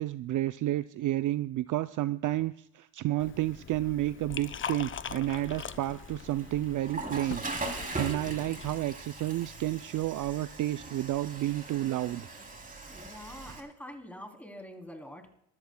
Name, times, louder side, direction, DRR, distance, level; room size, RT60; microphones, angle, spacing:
voice 1, 0.0-12.3, right 15 dB, 50° right, 13 dB, 0.5 m, -31 dB
Liquid, 3.2-8.8, left 7 dB, 30° left, 0.6 m, -42 dB
Water / Toilet flush, 5.2-13.6, right 2 dB, 20° right, 3.0 m, -41 dB
voice 2, 12.9-15.3, equal, 5° left, 3 dB, 3.1 m, -45 dB
24.0 x 14.0 x 2.2 m, 0.75 s
supercardioid pair, 75°, 40 cm